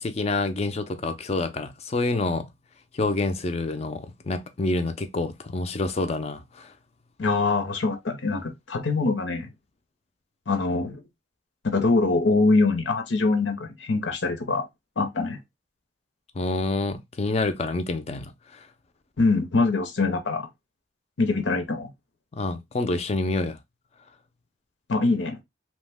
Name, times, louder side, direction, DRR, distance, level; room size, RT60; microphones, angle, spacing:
voice 1, 0.0-2.5 2.9-6.7 16.4-18.3 22.3-23.6, left 2 dB, 35° left, 0.4 m, -27 dB
voice 2, 7.2-9.5 10.5-11.0 11.6-14.6 15.0-15.4 19.2-20.5 21.2-21.9 24.9-25.4, left 3 dB, 85° left, 0.7 m, -23 dB
3.0 x 2.1 x 3.4 m
head